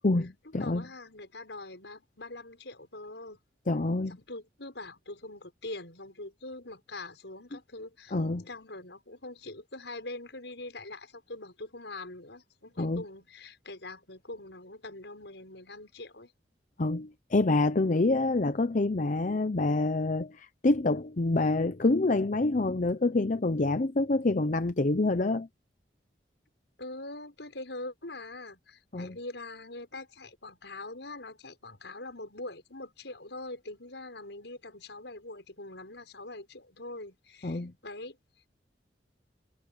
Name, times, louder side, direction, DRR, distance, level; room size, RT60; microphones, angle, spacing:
voice 1, 0.0-0.8 3.7-4.2 8.1-8.5 12.8-13.0 16.8-25.5 28.9-29.2 37.4-37.7, left 2 dB, 45° left, 0.7 m, -27 dB
voice 2, 0.6-3.4 4.1-8.1 8.5-16.3 26.8-38.2, left 2 dB, 85° left, 6.1 m, -43 dB
head